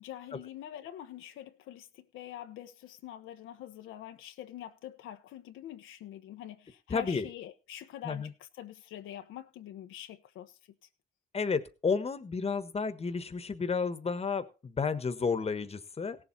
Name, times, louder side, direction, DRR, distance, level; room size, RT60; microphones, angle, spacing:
voice 1, 0.0-10.6, left 11 dB, 85° left, 1.0 m, -45 dB
voice 2, 6.9-7.3 8.0-8.3 11.3-16.2, left 5 dB, 30° left, 1.3 m, -31 dB
17.0 x 7.5 x 4.2 m
cardioid pair, 90°, 20 cm